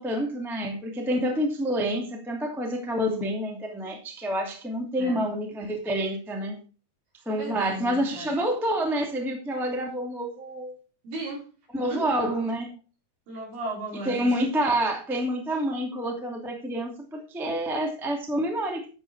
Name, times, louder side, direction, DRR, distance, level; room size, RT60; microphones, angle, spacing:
voice 1, 0.0-6.6 7.2-10.7 11.7-12.7 14.0-18.9, equal, ahead, 1.4 m, -28 dB
voice 2, 7.3-8.3 11.0-11.5 11.8-12.4 13.3-14.3, right 2 dB, 65° right, 7.0 m, -35 dB
12.0 x 7.7 x 4.8 m
omnidirectional pair, 4.8 m